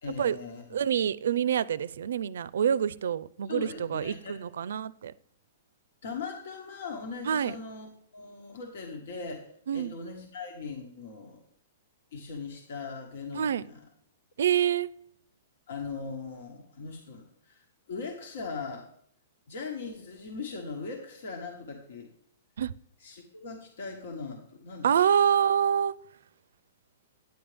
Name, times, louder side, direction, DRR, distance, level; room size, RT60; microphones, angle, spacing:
voice 1, 0.0-0.6 3.4-4.4 6.0-11.4 12.1-13.8 14.4-14.5 15.7-18.9 19.5-22.1 23.0-24.9, left 4 dB, 75° left, 1.6 m, -40 dB
voice 2, 0.7-5.1 7.2-7.5 9.7-9.9 13.3-13.6 14.4-14.9 22.6-22.7 24.8-25.9, right 8 dB, 75° right, 0.4 m, -26 dB
10.0 x 8.7 x 3.4 m
hypercardioid pair, 145°, 0 cm